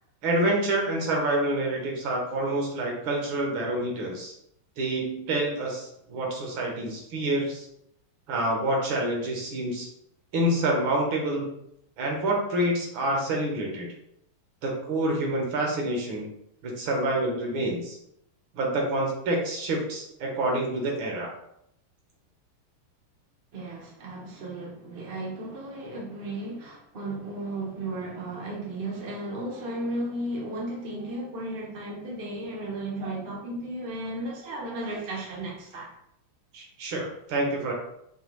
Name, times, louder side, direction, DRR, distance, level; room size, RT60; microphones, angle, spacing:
voice 1, 0.2-4.3 4.8-7.6 8.3-9.9 10.3-11.5 12.0-13.9 14.6-16.3 16.6-18.0 18.5-21.3 36.5-37.7, right 1 dB, 70° right, 0 dB, 1.7 m, -27 dB
voice 2, 23.5-35.9, right 1 dB, 55° right, -3 dB, 0.7 m, -34 dB
5.2 x 2.2 x 3.0 m, 0.75 s
omnidirectional pair, 2.4 m